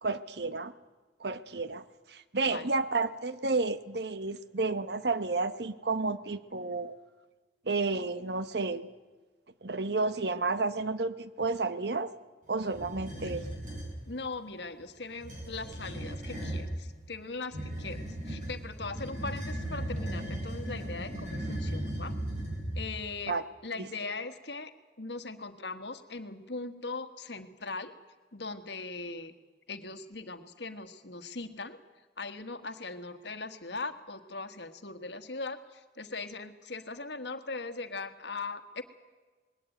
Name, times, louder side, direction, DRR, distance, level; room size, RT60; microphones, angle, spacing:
voice 1, 0.0-0.7 1.2-1.8 2.1-6.9 7.7-8.9 9.6-12.1 12.5-13.4 23.3-23.4, right 3 dB, 65° right, 13 dB, 1.0 m, -31 dB
sound 1, 12.7-14.0 15.1-16.7 17.5-23.0, right 1 dB, 45° right, 7.7 m, -37 dB
voice 2, 13.2-13.6 14.1-22.1 22.7-23.3 23.6-24.7 25.0-27.9 28.3-29.3 29.7-31.8 32.2-38.8, left 3 dB, 70° left, 10 dB, 1.5 m, -40 dB
20.5 x 17.5 x 9.1 m, 1.4 s
head